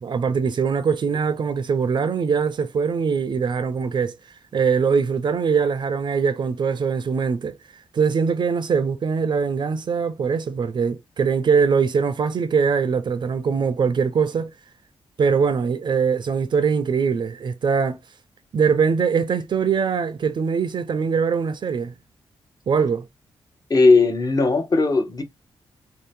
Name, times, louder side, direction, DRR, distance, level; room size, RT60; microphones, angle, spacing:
voice 1, 0.0-4.1 4.5-7.6 7.9-14.5 15.2-18.0 18.5-21.9 22.7-23.1, right 6 dB, 50° right, 0.4 m, -22 dB
voice 2, 23.7-25.2, left 3 dB, 40° left, 0.7 m, -17 dB
2.7 x 2.0 x 3.4 m
cardioid pair, 70°, 10 cm